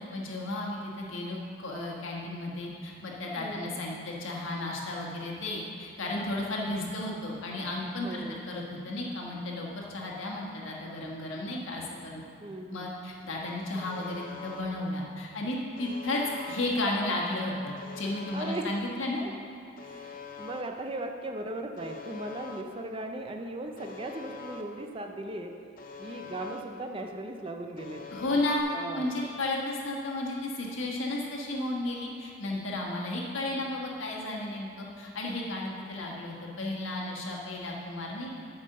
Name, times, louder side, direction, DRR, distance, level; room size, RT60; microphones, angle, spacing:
voice 1, 0.0-12.2 12.7-16.2 16.5-19.2 28.1-28.6 28.9-38.4, left 2 dB, 75° left, -2 dB, 1.5 m, -33 dB
voice 2, 3.4-3.8 8.0-8.4 12.4-12.9 18.3-18.7 19.8-25.5 26.0-28.0 28.7-29.1, right 1 dB, 25° right, 4 dB, 0.5 m, -38 dB
Alarm, 13.8-14.6 15.8-16.6 17.8-18.6 19.8-20.6 21.8-22.6 23.8-24.6 25.8-26.6 27.8-28.6, left 5 dB, 45° left, 0.6 m, -44 dB
8.7 x 5.4 x 6.6 m, 2.5 s
head